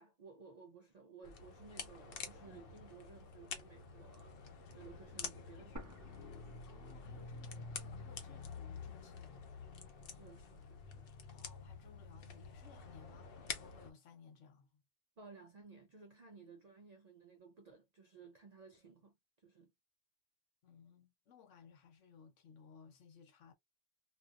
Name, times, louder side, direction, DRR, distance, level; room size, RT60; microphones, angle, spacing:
voice 1, 0.0-4.4 4.7-6.0 10.1-11.1 15.2-19.7, right 4 dB, 70° right, 0.3 m, -57 dB
sound 1, 1.2-13.9, left 5 dB, 55° left, 0.8 m, -48 dB
sound 2, 5.8-7.7 8.0-8.1 8.8-9.8, right 1 dB, 20° right, 0.7 m, -54 dB
voice 2, 6.7-9.5 11.3-14.8 20.6-23.5, left 6 dB, 80° left, 1.2 m, -60 dB
2.8 x 2.3 x 2.3 m
omnidirectional pair, 1.2 m